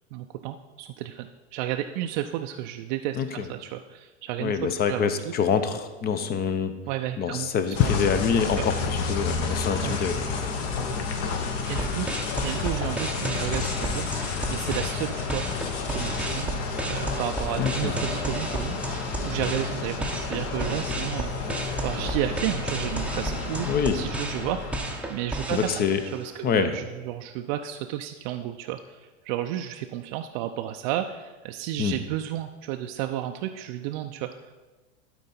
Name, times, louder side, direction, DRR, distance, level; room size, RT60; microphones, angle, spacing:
voice 1, 0.1-5.3 6.9-7.9 9.8-10.0 11.7-15.4 15.9-16.5 16.9-21.5 21.8-23.7 23.9-24.7 25.1-34.5, right 12 dB, 45° right, 5 dB, 0.5 m, -32 dB
voice 2, 3.1-3.5 4.4-6.8 7.2-10.5 17.6-18.0 23.7-24.0 25.5-26.0 26.4-26.8 31.8-32.0, left 7 dB, 30° left, 10 dB, 0.7 m, -25 dB
sound 1, 7.7-25.0, left 4 dB, 45° left, 1.1 m, -31 dB
sound 2, 11.6-26.4, right 2 dB, 5° right, 0.7 m, -34 dB
12.0 x 4.5 x 4.3 m, 1.2 s
hypercardioid pair, 90°, 33 cm